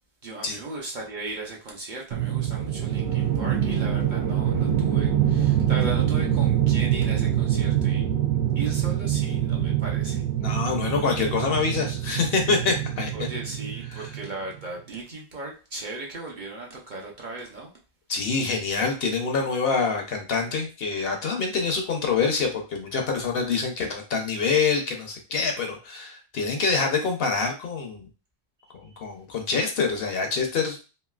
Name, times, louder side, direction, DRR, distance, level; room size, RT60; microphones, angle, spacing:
voice 1, 0.2-8.0 8.6-10.2 13.1-17.7 28.6-28.7, right 2 dB, 50° right, -2 dB, 0.7 m, -37 dB
sound 1, 2.1-14.3, right 10 dB, 85° right, 0.9 m, -25 dB
voice 2, 10.4-13.3 13.9-14.1 18.1-28.1 28.7-30.8, left 4 dB, 60° left, 3 dB, 0.8 m, -26 dB
3.1 x 2.6 x 2.3 m, 0.33 s
omnidirectional pair, 1.2 m